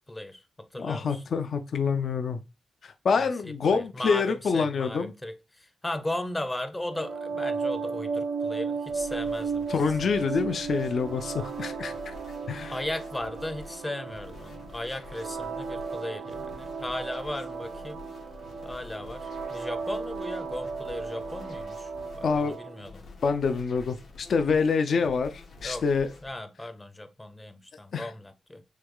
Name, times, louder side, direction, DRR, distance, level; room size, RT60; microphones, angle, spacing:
voice 1, 0.1-1.2 3.2-9.7 10.0-10.3 10.5-11.0 12.7-18.1 18.6-23.1 25.6-25.8 26.2-28.6, left 1 dB, 15° left, 0.6 m, -37 dB
voice 2, 0.8-2.4 2.8-5.1 9.7-12.1 12.5-12.7 22.2-22.6 23.2-26.1 27.9-28.1, left 5 dB, 60° left, 0.5 m, -26 dB
sound 1, 6.9-22.8, right 5 dB, 65° right, 0.6 m, -35 dB
sound 2, 8.9-26.3, left 3 dB, 75° left, 1.7 m, -48 dB
6.3 x 2.3 x 3.6 m
wide cardioid pair, 125°, 0 cm